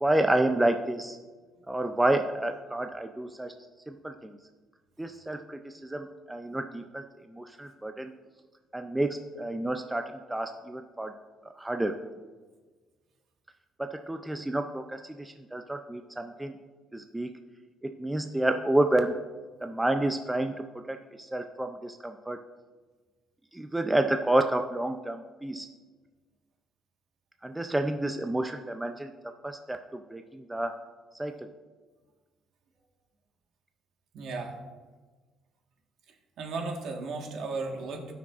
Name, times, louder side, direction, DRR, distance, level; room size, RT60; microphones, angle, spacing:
voice 1, 0.0-1.2 1.7-3.5 3.9-4.4 5.0-7.0 7.3-8.1 8.7-11.1 11.6-12.0 13.8-16.5 16.9-17.3 17.8-19.1 19.6-22.4 23.5-25.7 27.4-29.1 29.4-30.7 31.2-31.5, right 1 dB, 5° right, 5 dB, 0.3 m, -29 dB
voice 2, 34.1-34.6 36.4-38.1, right 3 dB, 60° right, 1 dB, 1.4 m, -35 dB
17.5 x 6.0 x 2.4 m, 1.4 s
cardioid pair, 160°, 0 cm